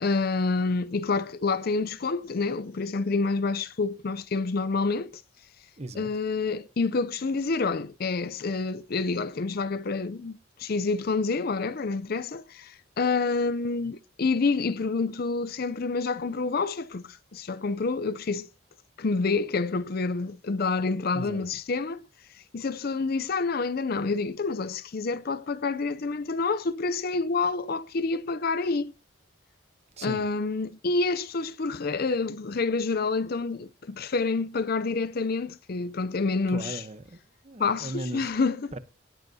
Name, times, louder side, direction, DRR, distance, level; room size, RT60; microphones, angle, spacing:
voice 1, 0.0-5.1 6.0-18.5 19.0-22.0 22.5-28.9 30.0-36.8 37.6-38.7, left 4 dB, 45° left, 0.5 m, -28 dB
voice 2, 5.8-6.1 21.1-21.5 30.0-30.2 36.5-37.2 37.4-38.3 38.7-38.8, right 2 dB, 30° right, 0.8 m, -37 dB
18.5 x 7.8 x 2.7 m
head